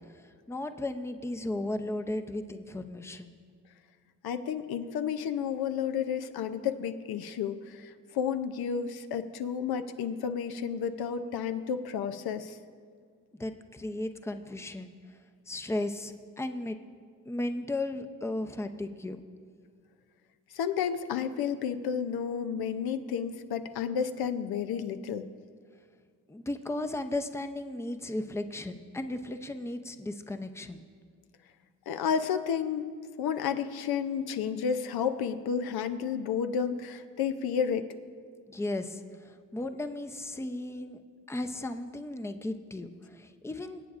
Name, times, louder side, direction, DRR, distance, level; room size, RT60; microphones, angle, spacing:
voice 1, 0.1-3.4 13.3-14.9 15.5-16.8 17.3-19.2 26.3-30.8 38.5-41.0 41.3-43.8, left 2 dB, 5° left, 8 dB, 0.6 m, -35 dB
voice 2, 4.2-12.6 20.5-25.3 31.9-32.9 33.2-37.9, left 7 dB, 80° left, 9 dB, 0.6 m, -31 dB
22.5 x 8.5 x 2.5 m, 2.1 s
cardioid pair, 70°, 36 cm